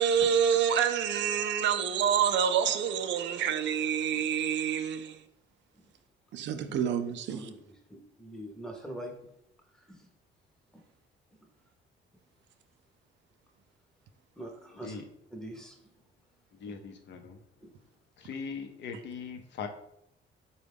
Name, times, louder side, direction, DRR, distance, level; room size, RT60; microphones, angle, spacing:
voice 1, 0.0-5.2 6.3-7.4, right 8 dB, 65° right, 0.4 m, -27 dB
voice 2, 7.3-9.3 9.7-10.1 10.7-10.8 14.4-15.0 15.3-15.9 16.7-16.8 17.6-17.7, right 1 dB, 5° left, 0.7 m, -44 dB
voice 3, 14.8-15.1 16.5-17.4 18.2-19.7, left 5 dB, 65° left, 0.6 m, -40 dB
4.0 x 2.2 x 3.4 m
cardioid pair, 90°, 20 cm